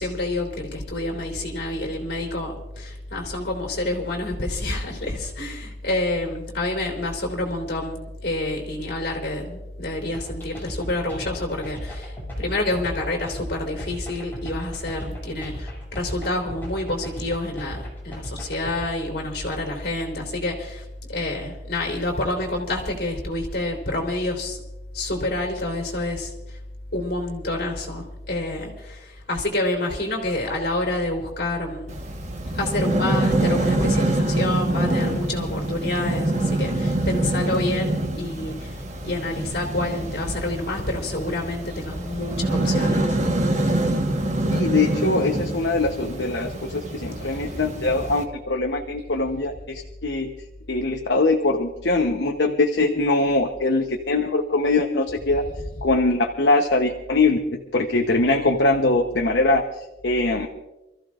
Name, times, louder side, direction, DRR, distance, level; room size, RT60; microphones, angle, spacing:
voice 1, 0.0-24.6 24.9-26.6 26.9-31.9 32.5-43.2 47.5-47.6 55.6-55.9, left 2 dB, 60° left, 1 dB, 3.8 m, -28 dB
sound 1, 10.1-18.8, equal, 10° left, 6.5 m, -37 dB
sound 2, 31.9-48.2, right 1 dB, 40° right, 1.4 m, -25 dB
voice 2, 44.5-50.3 50.7-55.4 55.8-60.5, left 2 dB, 80° left, 2 dB, 1.0 m, -22 dB
28.0 x 14.5 x 2.5 m, 1.0 s
head